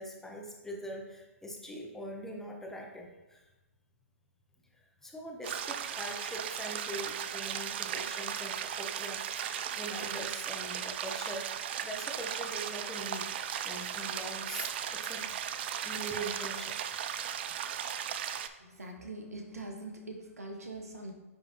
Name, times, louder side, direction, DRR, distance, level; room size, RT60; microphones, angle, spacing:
voice 1, 0.0-3.4 4.7-11.5 11.8-16.8, equal, 5° left, 0 dB, 0.9 m, -43 dB
sound 1, 5.4-18.5, right 9 dB, 45° right, 0.4 m, -36 dB
voice 2, 18.6-21.1, right 2 dB, 90° right, 3 dB, 1.2 m, -43 dB
9.2 x 3.6 x 2.9 m, 1.1 s
hypercardioid pair, 135°, 8 cm